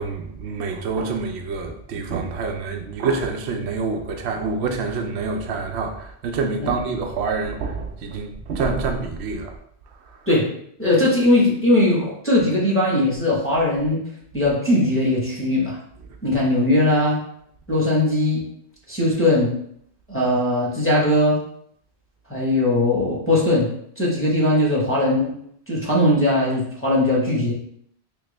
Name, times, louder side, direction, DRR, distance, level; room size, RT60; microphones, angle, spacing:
voice 1, 0.0-9.5, right 4 dB, 80° right, 0.9 m, -26 dB
voice 2, 10.8-14.0 14.3-15.8 16.2-17.2 17.7-18.4 18.9-19.5 20.1-21.4 22.3-23.7 24.0-25.3 25.7-27.5, left 1 dB, 10° left, 1.1 m, -19 dB
3.5 x 3.0 x 3.3 m
omnidirectional pair, 1.1 m